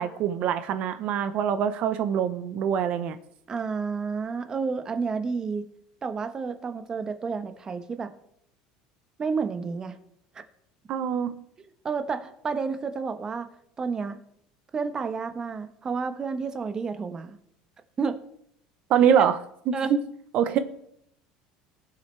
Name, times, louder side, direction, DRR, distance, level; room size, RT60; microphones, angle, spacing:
voice 1, 0.0-3.2 10.9-11.4 18.9-19.4 19.7-20.0 20.3-20.6, right 8 dB, 55° right, 11 dB, 0.9 m, -24 dB
voice 2, 3.5-5.6 6.0-8.1 9.2-10.0 11.8-13.5 13.8-14.2 14.7-17.4 18.0-18.2 19.2-19.3 19.7-19.9, right 5 dB, 25° right, 8 dB, 1.1 m, -30 dB
18.5 x 7.6 x 3.3 m, 0.72 s
supercardioid pair, 115°, 3 cm